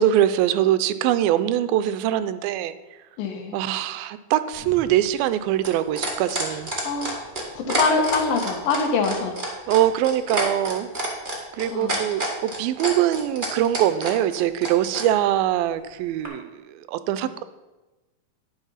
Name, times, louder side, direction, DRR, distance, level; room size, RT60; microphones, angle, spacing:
voice 1, 0.0-2.8 3.5-6.7 9.7-11.2 11.5-17.4, right 12 dB, 85° right, 13 dB, 2.4 m, -23 dB
voice 2, 3.2-3.6 6.5-7.3 7.5-9.3 11.7-12.0, left 4 dB, 75° left, 3 dB, 2.9 m, -25 dB
sound 1, 4.5-15.1 16.2-16.3, right 1 dB, 25° right, 1.1 m, -28 dB
11.0 x 7.2 x 5.6 m, 1.1 s
omnidirectional pair, 4.2 m